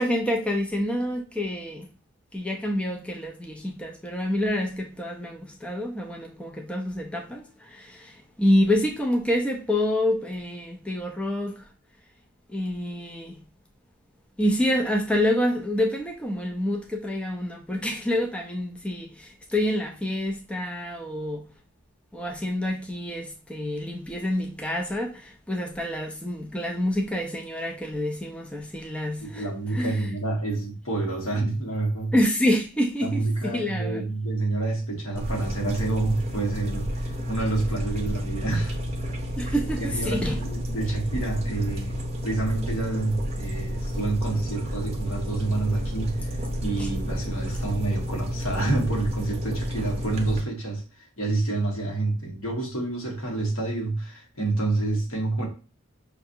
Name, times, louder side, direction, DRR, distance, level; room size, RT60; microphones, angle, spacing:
voice 1, 0.0-1.9 2.3-11.7 12.5-13.4 14.4-21.5 22.1-30.1 32.1-34.1 39.4-40.4 46.8-46.9, left 1 dB, 5° left, 0.3 m, -27 dB
voice 2, 29.2-32.1 33.0-38.8 39.5-41.9 42.2-55.5, right 2 dB, 75° left, 1.4 m, -28 dB
sound 1, 35.2-50.4, equal, 30° right, 0.6 m, -31 dB
5.7 x 2.5 x 2.6 m
head